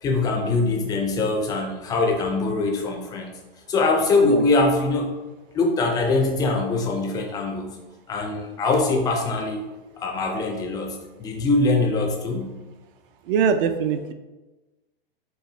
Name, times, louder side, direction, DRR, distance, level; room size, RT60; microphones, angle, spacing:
voice 1, 0.0-3.4 3.7-5.2 5.5-7.8 8.1-9.6 10.0-12.6, left 3 dB, 15° left, 2 dB, 0.4 m, -23 dB
voice 2, 13.3-14.1, right 6 dB, 60° right, 9 dB, 0.5 m, -22 dB
4.5 x 2.5 x 3.1 m, 1.1 s
hypercardioid pair, 135°, 30 cm